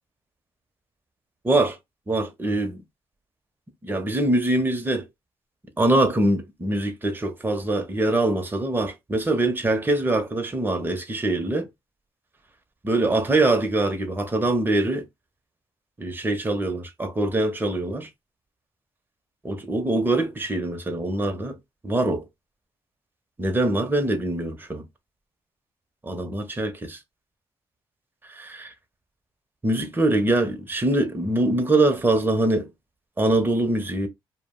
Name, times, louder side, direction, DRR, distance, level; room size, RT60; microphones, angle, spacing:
voice 1, 1.4-1.8 2.1-2.8 3.8-5.0 5.8-11.7 12.8-15.0 16.0-18.1 19.4-21.5 21.8-22.2 23.4-24.8 26.0-27.0 28.3-28.7 29.6-32.7 33.2-34.1, right 2 dB, 20° right, 0.8 m, -23 dB
2.3 x 2.1 x 3.7 m
cardioid pair, 65°, 10 cm